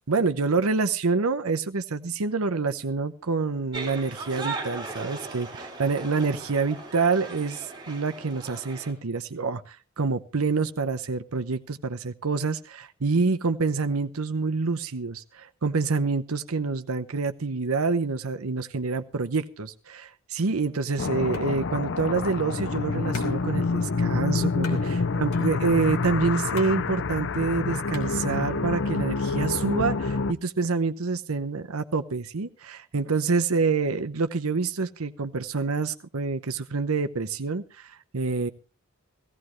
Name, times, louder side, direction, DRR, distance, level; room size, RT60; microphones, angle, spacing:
voice 1, 0.1-38.5, right 4 dB, 80° right, 8 dB, 0.9 m, -27 dB
sound 1, 3.7-8.9, right 3 dB, 20° right, 3.1 m, -38 dB
sound 2, 21.0-30.3, left 4 dB, 60° left, 0.6 m, -27 dB
sound 3, 21.3-28.7, equal, 85° left, 3.1 m, -42 dB
16.5 x 16.0 x 3.1 m, 0.32 s
head